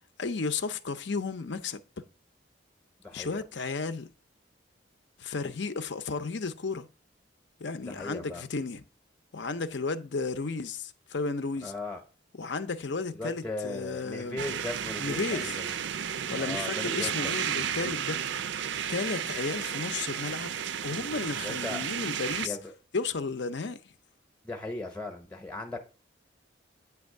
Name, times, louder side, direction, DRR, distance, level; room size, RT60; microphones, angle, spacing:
voice 1, 0.2-1.8 3.1-4.1 5.2-6.9 7.6-8.8 9.3-11.7 12.4-14.4 15.0-15.6 16.3-18.4 18.9-20.5 20.8-22.6 22.9-23.9, left 4 dB, 65° left, 0.7 m, -33 dB
voice 2, 3.0-3.4 7.8-8.4 11.6-12.0 13.1-15.8 16.4-17.3 21.4-21.8 22.4-22.7 24.4-25.8, left 2 dB, 5° left, 0.8 m, -38 dB
sound 1, 14.4-22.5, right 8 dB, 65° right, 0.4 m, -33 dB
8.9 x 3.5 x 6.4 m
head